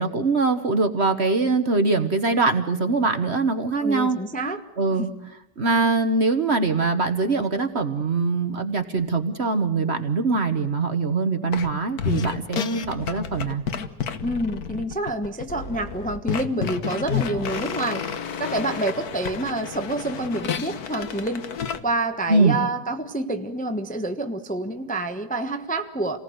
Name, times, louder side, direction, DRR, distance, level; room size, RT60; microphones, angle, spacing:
voice 1, 0.0-4.2 4.8-5.1 5.6-13.6 22.3-22.6, right 3 dB, 40° right, 8 dB, 1.3 m, -22 dB
voice 2, 3.8-4.6 5.0-5.1 14.2-18.0 18.4-21.4 21.8-26.2, right 2 dB, 5° left, 6 dB, 0.9 m, -27 dB
sound 1, 11.5-11.7 12.0-21.8, left 7 dB, 60° left, 1.6 m, -30 dB
28.5 x 19.0 x 7.9 m, 0.87 s
omnidirectional pair, 1.9 m